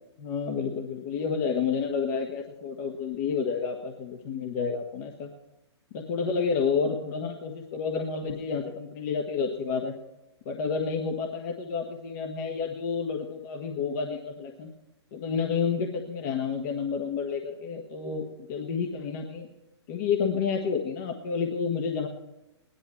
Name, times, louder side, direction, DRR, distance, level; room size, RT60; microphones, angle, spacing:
voice 1, 0.2-5.3 5.9-9.9 10.4-14.7 15.1-19.5 19.9-22.1, left 5 dB, 40° left, 3 dB, 1.5 m, -30 dB
18.0 x 11.5 x 4.4 m, 0.92 s
figure-of-eight pair, 125°, 15 cm